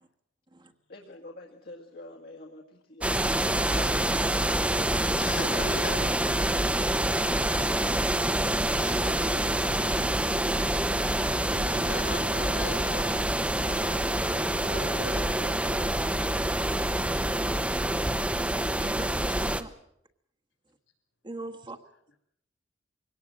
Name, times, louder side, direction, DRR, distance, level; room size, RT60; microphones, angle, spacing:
voice 1, 0.9-3.3 9.0-9.9 14.8-17.1, left 2 dB, 55° left, 1 dB, 1.9 m, -47 dB
sound 1, 3.0-19.6, right 1 dB, 5° right, 0.9 m, -26 dB
voice 2, 3.7-4.2 4.5-6.7 8.6-8.9 10.9-15.2 19.6-19.7, left 2 dB, 75° left, 5 dB, 6.2 m, -41 dB
voice 3, 18.7-19.7 21.2-21.8, right 2 dB, 25° right, 6 dB, 1.3 m, -41 dB
22.5 x 18.0 x 7.8 m, 0.75 s
head